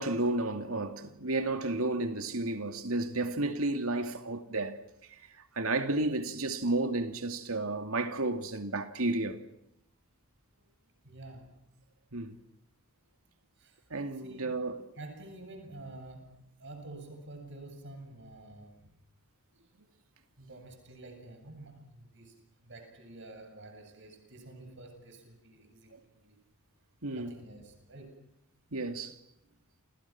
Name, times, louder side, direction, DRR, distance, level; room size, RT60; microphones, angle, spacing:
voice 1, 0.0-4.8 5.1-5.2 5.6-9.4 12.1-12.4 13.9-14.8 27.0-27.4 28.7-29.2, right 2 dB, 80° right, 2.6 m, -32 dB
voice 2, 11.0-11.5 13.6-13.8 14.2-14.5 15.0-18.9 20.4-26.4 27.1-28.3, right 2 dB, 60° right, 7.8 m, -49 dB
29.5 x 29.0 x 6.1 m
head